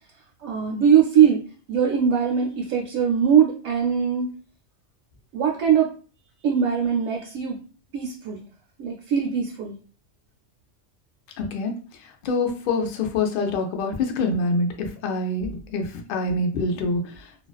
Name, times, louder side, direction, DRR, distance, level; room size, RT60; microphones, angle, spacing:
voice 1, 0.4-1.4 1.7-4.3 5.3-5.9 6.4-7.6 7.9-8.4 8.8-9.8, right 8 dB, 75° right, -1 dB, 0.9 m, -21 dB
voice 2, 11.4-11.7 12.2-17.1, left 2 dB, 65° left, 3 dB, 0.5 m, -25 dB
2.3 x 2.3 x 2.2 m, 0.38 s
omnidirectional pair, 1.3 m